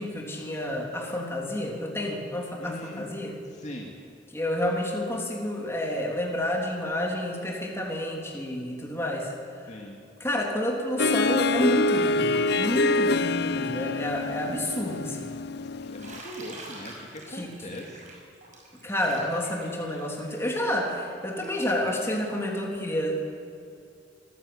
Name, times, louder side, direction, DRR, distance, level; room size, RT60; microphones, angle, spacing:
voice 1, 0.0-3.4 4.3-9.3 10.2-15.3 17.3-17.8 18.8-23.2, left 1 dB, 15° left, -1 dB, 3.4 m, -29 dB
voice 2, 2.6-3.1 3.4-3.9 9.7-10.0 15.8-18.0, equal, 40° left, 0 dB, 2.3 m, -40 dB
Harp, 11.0-16.2, left 3 dB, 60° left, 0.6 m, -26 dB
Bathtub (filling or washing), 16.0-21.7, right 2 dB, 40° right, 6.1 m, -46 dB
24.0 x 15.0 x 8.8 m, 2.5 s
head